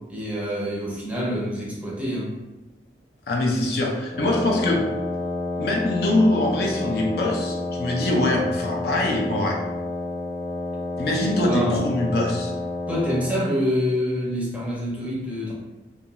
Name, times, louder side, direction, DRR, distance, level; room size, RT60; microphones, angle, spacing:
voice 1, 0.1-2.4 11.5-11.9 12.9-15.5, equal, 5° right, -5 dB, 0.5 m, -26 dB
voice 2, 3.3-4.9 5.6-9.6 11.0-12.5, left 1 dB, 55° left, 0 dB, 0.4 m, -23 dB
Wind instrument woodwind instrument, 4.1-13.4, left 2 dB, 85° left, 0.9 m, -29 dB
2.3 x 2.2 x 2.9 m, 1.1 s
head